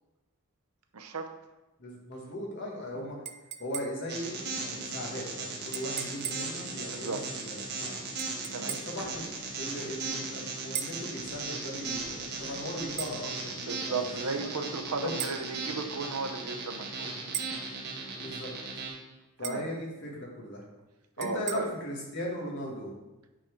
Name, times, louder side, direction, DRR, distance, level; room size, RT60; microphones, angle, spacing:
voice 1, 0.9-1.3 6.9-7.3 8.5-8.8 13.6-17.3 19.4-19.7 21.2-21.7, right 4 dB, 80° right, 7 dB, 0.8 m, -35 dB
voice 2, 1.8-3.2 3.6-8.0 8.6-13.5 13.8-14.0 14.3-14.5 15.0-15.2 18.2-18.5 19.4-20.6 21.2-22.9, left 1 dB, 55° left, -2 dB, 1.9 m, -38 dB
sound 1, 3.3-4.2 5.7-6.6 8.2-9.0 10.8-11.1 13.0-13.2 15.2-15.4 17.3-17.7 19.4-19.8 21.2-21.6, right 10 dB, 30° right, 0.4 m, -38 dB
sound 2, 4.1-18.9, right 4 dB, 50° right, 1.7 m, -37 dB
sound 3, 9.0-10.8 11.1-13.3 13.7-15.2, left 1 dB, 75° left, 1.7 m, -51 dB
8.7 x 4.4 x 4.7 m, 1.0 s
head